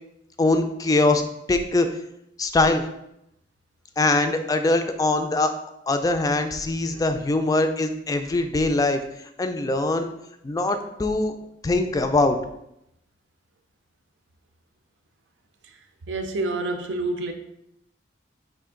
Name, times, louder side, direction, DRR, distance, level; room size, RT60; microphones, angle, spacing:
voice 1, 0.4-1.2 1.5-1.9 2.4-2.8 4.0-5.5 5.9-9.0 9.4-10.1 10.4-11.3 11.6-12.4, left 2 dB, 20° left, 7 dB, 0.3 m, -22 dB
voice 2, 16.1-17.3, right 2 dB, 90° right, 6 dB, 0.5 m, -28 dB
5.1 x 2.5 x 3.7 m, 0.81 s
head